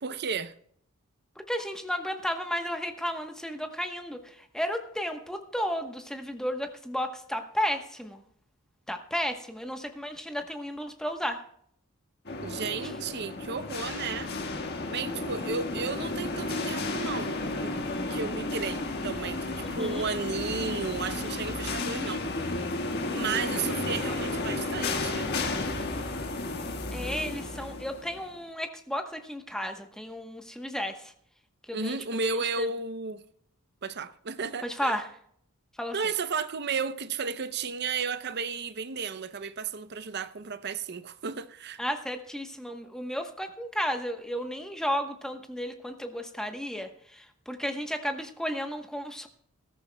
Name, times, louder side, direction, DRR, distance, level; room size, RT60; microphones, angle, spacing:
voice 1, 0.0-0.5 12.4-14.3 14.9-17.7 18.1-22.5 23.1-25.3 31.7-33.2 33.8-35.0 35.9-41.8, right 5 dB, 50° right, 0.6 m, -33 dB
voice 2, 1.5-8.2 8.9-11.4 12.8-12.9 19.6-20.0 26.9-31.1 31.7-32.0 32.3-32.7 34.6-35.1 35.8-36.0 41.8-49.3, equal, 5° left, 1.0 m, -33 dB
sound 1, 12.3-28.3, left 2 dB, 50° left, 1.5 m, -33 dB
20.0 x 13.5 x 2.3 m
head